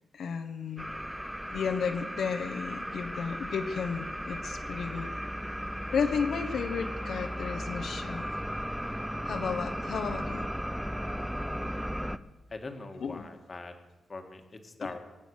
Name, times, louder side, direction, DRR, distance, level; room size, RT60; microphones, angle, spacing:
voice 1, 0.1-0.9 1.5-5.1 5.9-8.3 9.2-10.5 13.0-13.3 14.8-14.9, left 6 dB, 70° left, 5 dB, 1.2 m, -33 dB
sound 1, 0.8-12.2, equal, ahead, 0.5 m, -36 dB
voice 2, 12.5-13.7 14.1-15.0, left 3 dB, 30° left, 5 dB, 1.7 m, -41 dB
24.0 x 9.1 x 6.5 m, 1.1 s
wide cardioid pair, 165°, 0 cm